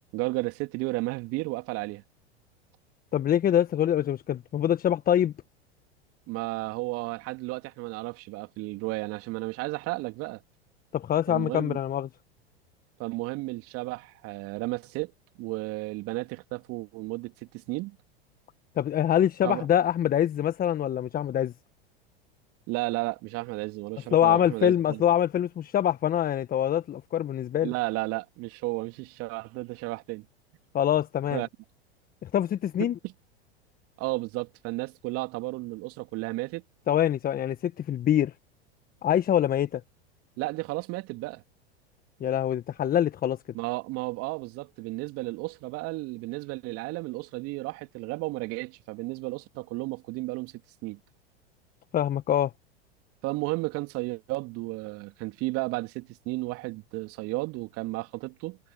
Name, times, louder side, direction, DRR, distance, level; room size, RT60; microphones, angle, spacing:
voice 1, 0.1-2.0 6.3-10.4 11.3-11.8 13.0-15.1 15.4-18.0 19.4-19.7 22.7-25.0 27.6-30.3 31.3-31.5 32.8-33.1 34.0-36.6 40.4-41.4 43.5-50.5 50.8-51.0 53.2-58.6, right 22 dB, 45° right, 3.4 m, -33 dB
voice 2, 3.1-5.3 10.9-12.1 18.8-21.5 24.1-27.7 30.7-31.4 32.2-32.9 36.9-38.3 39.0-39.8 42.2-43.4 51.9-52.5, left 10 dB, 30° left, 1.5 m, -24 dB
hypercardioid pair, 95°, 31 cm